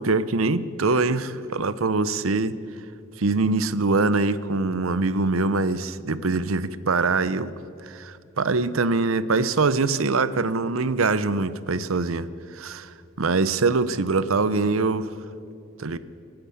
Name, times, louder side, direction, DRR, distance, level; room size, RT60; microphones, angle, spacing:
voice 1, 0.0-2.6 3.2-7.5 7.8-12.3 12.5-12.9 13.2-15.1 15.8-16.0, right 3 dB, 85° right, 15 dB, 0.8 m, -23 dB
24.5 x 14.0 x 8.6 m, 2.5 s
head